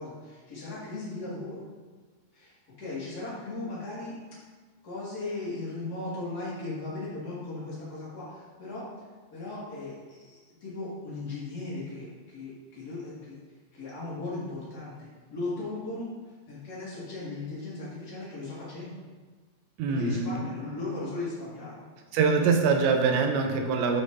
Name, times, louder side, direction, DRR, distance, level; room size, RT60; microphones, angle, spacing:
voice 1, 0.0-1.6 2.3-4.2 4.8-8.8 9.3-13.4 13.7-16.1 16.4-19.0 19.9-21.8, left 2 dB, 35° left, -8 dB, 1.5 m, -37 dB
voice 2, 19.8-20.4 22.1-24.0, right 5 dB, 80° right, 4 dB, 3.0 m, -24 dB
11.0 x 5.2 x 2.7 m, 1.4 s
omnidirectional pair, 5.2 m